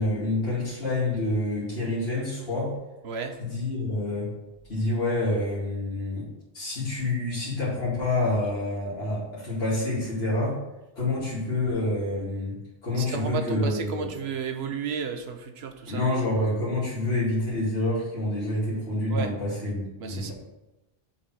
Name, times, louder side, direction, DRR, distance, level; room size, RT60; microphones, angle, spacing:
voice 1, 0.0-2.7 3.4-4.3 4.7-6.3 6.5-10.6 11.0-14.1 15.9-20.3, left 2 dB, 85° left, 2.7 m, -27 dB
voice 2, 3.0-3.4 13.0-16.0 19.1-19.4 20.0-20.3, right 6 dB, 90° right, 1.0 m, -33 dB
7.1 x 3.7 x 6.1 m
omnidirectional pair, 1.0 m